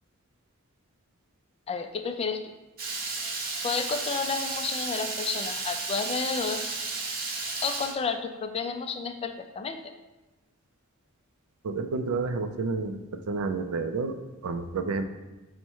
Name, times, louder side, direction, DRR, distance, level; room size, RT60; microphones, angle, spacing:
voice 1, 1.7-2.5 3.6-6.6 7.6-9.8, left 5 dB, 30° left, 7 dB, 0.3 m, -31 dB
Water tap faucet / Liquid, 2.8-7.9, right 3 dB, 45° right, 0.7 m, -33 dB
voice 2, 11.6-14.2 14.4-15.0, right 4 dB, 75° right, 8 dB, 0.4 m, -30 dB
5.5 x 2.1 x 4.5 m, 1.1 s
head